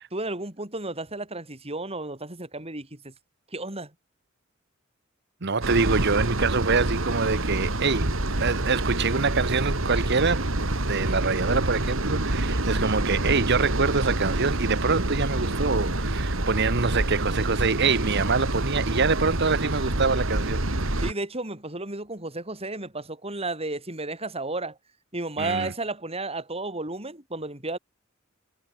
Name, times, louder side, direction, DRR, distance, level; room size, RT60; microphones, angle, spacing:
voice 1, 0.0-3.1 3.5-3.9 21.0-24.8 25.1-27.8, right 2 dB, 30° right, 6.5 m, -33 dB
voice 2, 5.4-8.1 8.4-20.7 25.4-25.7, right 4 dB, 55° right, 1.2 m, -25 dB
sound 1, 5.6-21.1, right 1 dB, 75° right, 2.9 m, -27 dB
head